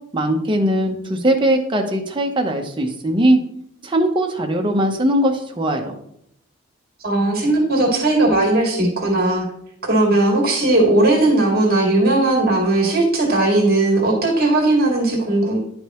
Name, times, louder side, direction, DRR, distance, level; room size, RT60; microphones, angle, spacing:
voice 1, 0.1-3.4 3.8-5.9, right 1 dB, 25° right, 3 dB, 0.9 m, -19 dB
voice 2, 7.0-9.5 9.9-15.6, right 2 dB, 45° right, 0 dB, 2.1 m, -17 dB
10.0 x 5.3 x 3.0 m, 0.71 s
head